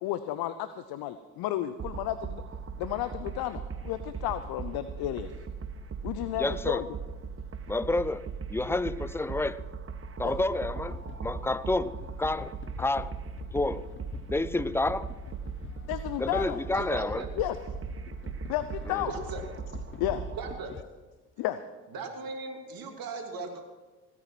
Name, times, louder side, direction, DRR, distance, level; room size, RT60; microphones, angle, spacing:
voice 1, 0.0-2.4 2.8-5.3 6.0-6.9 8.7-8.8 10.2-10.3 15.9-16.6 17.4-17.6 18.5-19.1 20.0-20.3 21.4-21.6, left 13 dB, 60° left, 0.8 m, -32 dB
sound 1, 1.8-20.6, right 5 dB, 30° right, 1.1 m, -39 dB
voice 2, 6.4-6.8 7.7-9.6 10.2-13.1 13.5-13.8 14.3-15.1 16.2-17.2 18.9-19.0, left 2 dB, 5° left, 0.4 m, -29 dB
sound 2, 10.2-20.8, left 8 dB, 30° left, 0.8 m, -47 dB
voice 3, 16.7-17.3 19.0-19.4 20.3-20.7 21.9-23.6, right 4 dB, 55° right, 2.8 m, -38 dB
17.0 x 9.5 x 6.1 m
hypercardioid pair, 55°, 42 cm